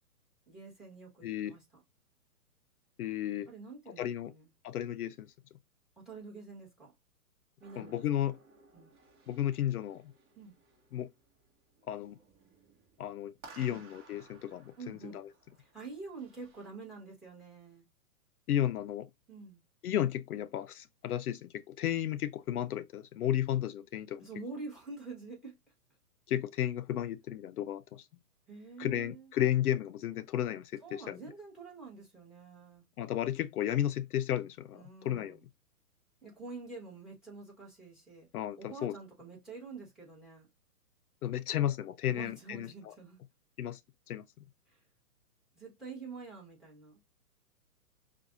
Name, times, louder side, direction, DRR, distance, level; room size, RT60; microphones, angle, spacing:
voice 1, 0.5-1.8 3.5-4.5 6.0-6.9 7.6-8.0 8.7-8.9 10.3-10.5 13.7-13.8 14.8-15.2 15.6-17.8 19.3-19.6 24.2-25.5 28.5-29.3 30.8-32.8 34.7-35.4 36.2-38.3 38.6-40.5 42.0-43.2 44.7-44.8 45.5-47.0, right 4 dB, ahead, 1.6 m, -47 dB
voice 2, 1.2-1.5 3.0-3.5 4.0-4.3 4.6-5.3 7.8-8.4 9.3-10.1 10.9-11.1 11.9-12.2 13.0-15.3 18.5-19.1 19.8-24.3 26.3-28.1 28.8-31.2 33.0-35.4 38.3-39.0 41.2-42.9 43.6-43.8 44.1-44.2, left 11 dB, 70° left, 0.5 m, -33 dB
sound 1, 7.6-16.7, right 4 dB, 25° right, 1.4 m, -59 dB
5.8 x 2.5 x 2.6 m
hypercardioid pair, 140°, 46 cm